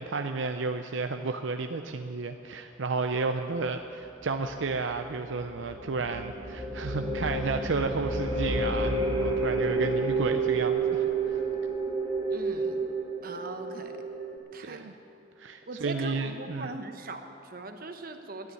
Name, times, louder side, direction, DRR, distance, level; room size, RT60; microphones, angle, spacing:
voice 1, 0.0-11.4 14.6-14.9 15.4-16.7, right 4 dB, 75° right, 6 dB, 0.6 m, -32 dB
sound 1, 4.0-14.4, right 3 dB, 30° right, 2.9 m, -30 dB
voice 2, 12.3-12.8 13.2-13.9 14.5-14.8 15.7-18.5, right 2 dB, 50° right, 6 dB, 1.0 m, -40 dB
12.5 x 9.6 x 9.7 m, 2.7 s
head